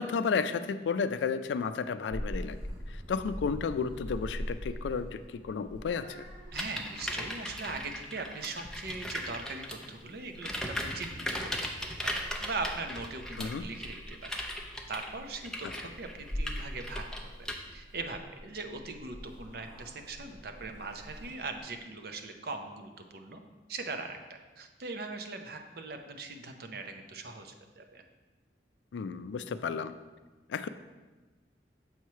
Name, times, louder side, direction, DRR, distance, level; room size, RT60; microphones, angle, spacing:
voice 1, 0.0-2.6 3.1-6.2 13.4-13.6 28.9-29.9 30.5-30.7, left 5 dB, 80° left, 12 dB, 0.3 m, -32 dB
Purr / Meow, 2.1-21.6, equal, 85° right, 2.1 m, -44 dB
sound 1, 6.5-9.9 10.3-17.5, left 1 dB, 5° left, 0.5 m, -38 dB
voice 2, 6.5-11.7 12.0-14.4 14.9-23.4 23.7-28.0, right 3 dB, 60° right, 5 dB, 0.6 m, -40 dB
7.2 x 3.1 x 5.6 m, 1.2 s
head